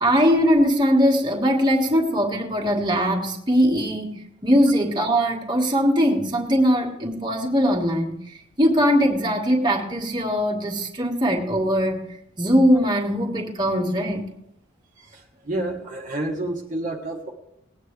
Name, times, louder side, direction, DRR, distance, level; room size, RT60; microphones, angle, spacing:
voice 1, 0.0-12.0 12.4-14.3, equal, 25° right, 0 dB, 1.7 m, -21 dB
voice 2, 15.0-17.3, right 1 dB, 40° right, -2 dB, 1.4 m, -30 dB
19.5 x 9.3 x 3.3 m, 0.76 s
head